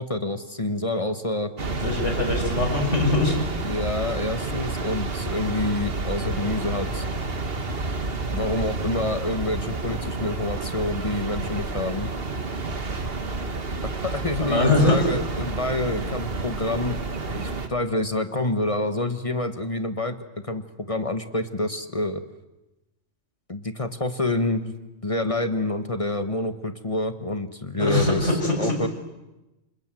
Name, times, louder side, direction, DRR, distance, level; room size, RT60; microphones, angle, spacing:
voice 1, 0.0-1.5 3.6-7.0 8.3-12.1 13.8-17.0 17.3-22.2 23.5-24.7 25.0-28.9, left 2 dB, 25° left, 9 dB, 1.4 m, -27 dB
sound 1, 1.6-17.7, right 3 dB, 50° right, 1.9 m, -30 dB
voice 2, 1.8-3.4 14.4-15.0 27.8-28.7, left 2 dB, 70° left, 2 dB, 6.4 m, -22 dB
29.0 x 26.0 x 7.7 m, 1.0 s
omnidirectional pair, 1.3 m